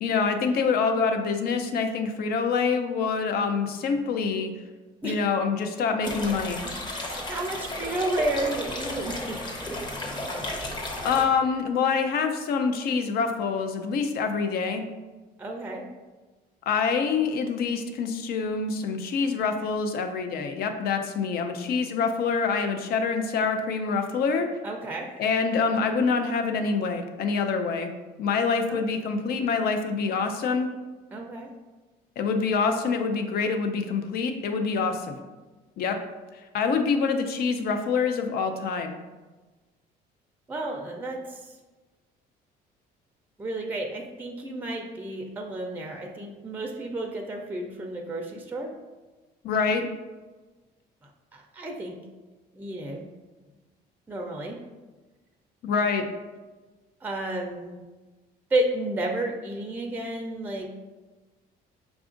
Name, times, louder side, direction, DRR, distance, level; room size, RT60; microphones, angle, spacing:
voice 1, 0.0-4.5 5.0-6.6 11.0-14.8 16.7-24.5 25.2-27.9 28.2-30.7 32.2-35.2 35.8-36.0 36.5-38.9 49.4-49.9 55.6-56.1, left 5 dB, 65° left, 6 dB, 0.6 m, -26 dB
sound 1, 6.0-11.2, left 1 dB, 25° left, 0.8 m, -33 dB
voice 2, 6.9-9.8 15.4-15.9 24.6-25.1 28.7-28.8 31.1-31.5 40.5-41.6 43.4-48.8 51.3-52.0 52.5-53.1 54.1-54.6 57.0-57.8 58.5-60.8, right 1 dB, 10° right, 1 dB, 0.4 m, -32 dB
5.0 x 2.4 x 3.7 m, 1.2 s
cardioid pair, 110°, 17 cm